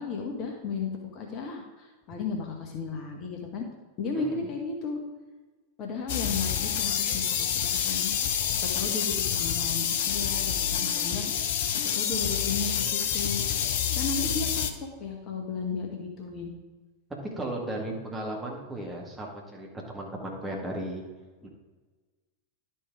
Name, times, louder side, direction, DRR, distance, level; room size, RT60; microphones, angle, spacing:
voice 1, 0.0-3.7 4.0-5.0 5.8-8.2 8.7-11.6 11.9-13.4 13.9-16.5, left 4 dB, 35° left, 1 dB, 1.3 m, -34 dB
sound 1, 6.1-14.7, left 9 dB, 55° left, 0.7 m, -28 dB
voice 2, 17.2-19.7 19.9-21.0 21.4-21.5, right 1 dB, 10° right, -1 dB, 2.0 m, -35 dB
11.0 x 4.6 x 4.8 m, 1.3 s
figure-of-eight pair, 90°, 0 cm